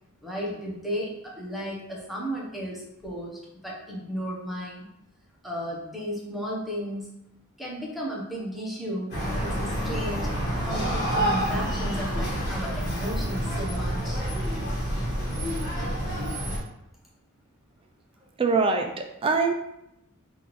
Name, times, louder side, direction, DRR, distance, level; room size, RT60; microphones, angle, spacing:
voice 1, 0.2-4.9 5.4-7.1 7.6-14.2, equal, ahead, -4 dB, 0.9 m, -34 dB
sound 1, 9.1-16.6, equal, 50° left, 1.4 m, -28 dB
voice 2, 18.4-19.5, right 4 dB, 25° right, 4 dB, 0.4 m, -23 dB
5.6 x 2.6 x 3.1 m, 0.83 s
head